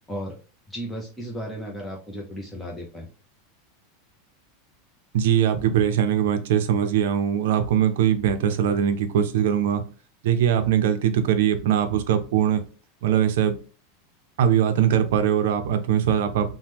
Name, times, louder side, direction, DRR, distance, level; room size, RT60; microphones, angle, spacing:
voice 1, 0.7-3.1, equal, 5° left, -3 dB, 0.5 m, -34 dB
voice 2, 5.1-9.8 10.2-12.6 13.0-13.5 14.4-16.5, right 9 dB, 75° right, 8 dB, 0.5 m, -21 dB
2.9 x 2.1 x 3.4 m, 0.36 s
supercardioid pair, 155°, 0 cm